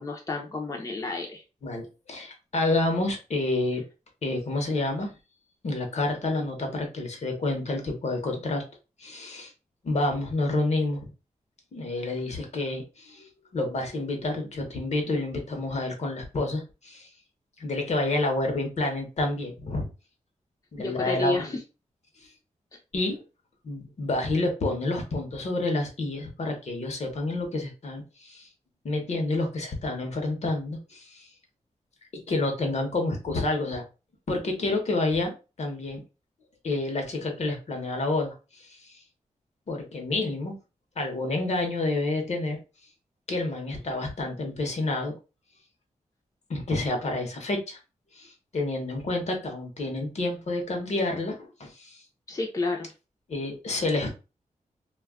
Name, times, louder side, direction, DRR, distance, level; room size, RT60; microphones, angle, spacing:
voice 1, 0.0-1.4 20.8-21.6 52.3-52.9, left 3 dB, 25° left, 0 dB, 0.5 m, -30 dB
voice 2, 1.6-3.8 4.2-5.1 5.6-8.6 9.0-9.5 9.8-11.1 11.7-17.1 17.6-19.9 20.7-21.6 22.2-22.3 22.9-23.2 23.6-28.5 28.8-31.3 32.3-33.8 34.3-36.0 36.6-39.0 39.7-40.5 41.0-42.6 43.3-45.1 46.5-47.8 48.1-52.0 53.3-54.1, left 2 dB, 60° left, 3 dB, 0.8 m, -29 dB
2.3 x 2.1 x 3.5 m, 0.31 s
wide cardioid pair, 115°, 13 cm